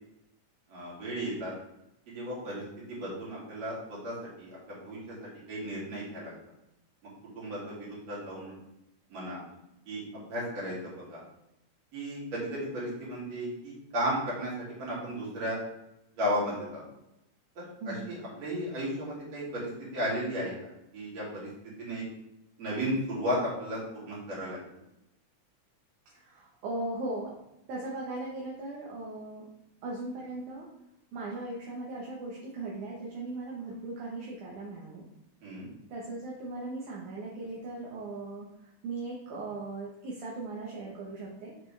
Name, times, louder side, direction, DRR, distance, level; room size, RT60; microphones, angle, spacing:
voice 1, 0.7-1.5 2.1-2.6 2.9-6.3 7.4-8.5 9.1-9.4 9.9-11.2 11.9-15.6 16.1-16.8 17.6-22.0 22.6-24.6 35.4-35.7, equal, 60° right, -7 dB, 3.9 m, -35 dB
voice 2, 17.8-18.2 26.1-27.3 27.7-29.5 29.8-30.7 31.1-35.1 35.9-41.5, right 2 dB, 75° right, -4 dB, 2.6 m, -38 dB
6.9 x 6.7 x 3.3 m, 0.86 s
omnidirectional pair, 3.5 m